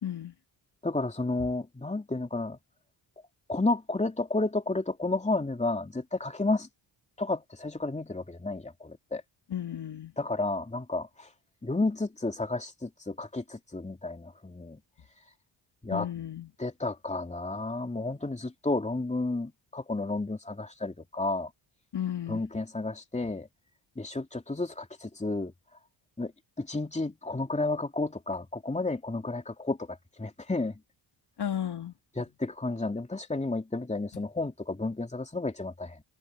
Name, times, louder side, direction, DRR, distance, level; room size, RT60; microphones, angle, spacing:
voice 1, 0.0-0.3 9.5-10.1 15.9-16.5 21.9-22.4 31.4-31.9, left 10 dB, 55° left, 3.2 m, -33 dB
voice 2, 0.8-2.6 3.5-6.7 7.2-9.2 10.2-11.3 11.6-14.8 15.8-16.1 16.6-21.5 22.3-23.5 24.0-25.5 26.2-26.3 26.6-30.7 32.2-36.0, left 2 dB, 15° left, 3.0 m, -31 dB
cardioid pair, 85°, 47 cm